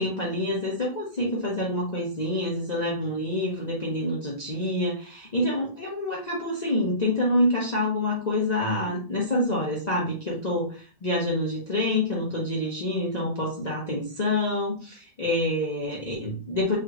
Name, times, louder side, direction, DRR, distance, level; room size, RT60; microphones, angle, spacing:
voice 1, 0.0-16.8, left 1 dB, 55° left, -4 dB, 0.4 m, -27 dB
3.4 x 2.9 x 2.4 m, 0.38 s
omnidirectional pair, 1.9 m